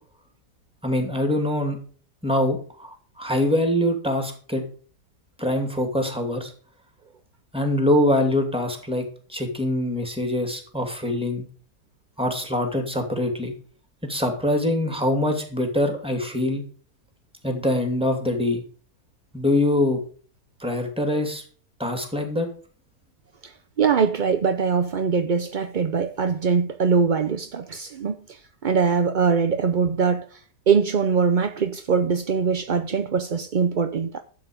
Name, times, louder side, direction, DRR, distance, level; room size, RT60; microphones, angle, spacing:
voice 1, 0.8-1.8 2.2-4.6 5.4-6.5 7.5-11.4 12.2-13.5 14.1-16.6 17.4-18.6 19.3-20.0 20.6-21.4 21.8-22.5, left 1 dB, 5° right, 2.6 m, -24 dB
voice 2, 23.8-30.2 30.7-34.2, right 6 dB, 60° right, 0.5 m, -22 dB
12.0 x 8.3 x 5.1 m
omnidirectional pair, 1.7 m